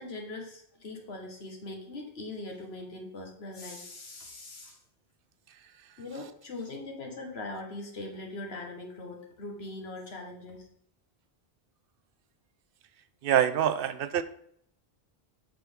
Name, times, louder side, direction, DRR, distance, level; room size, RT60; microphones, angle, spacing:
voice 1, 0.0-4.8 6.0-10.7, left 2 dB, 75° left, 1 dB, 1.7 m, -41 dB
voice 2, 13.2-14.2, right 10 dB, 65° right, 12 dB, 0.7 m, -25 dB
7.6 x 5.9 x 3.5 m, 0.67 s
omnidirectional pair, 1.1 m